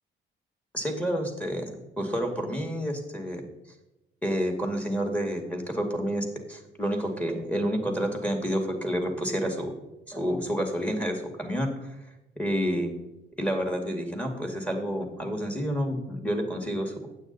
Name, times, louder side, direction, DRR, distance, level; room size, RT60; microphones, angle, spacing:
voice 1, 0.7-3.4 4.2-9.7 10.1-11.9 12.4-12.9 13.4-16.9, equal, 5° left, 3 dB, 2.1 m, -29 dB
8.9 x 7.9 x 4.1 m, 0.96 s
cardioid pair, 90°, 20 cm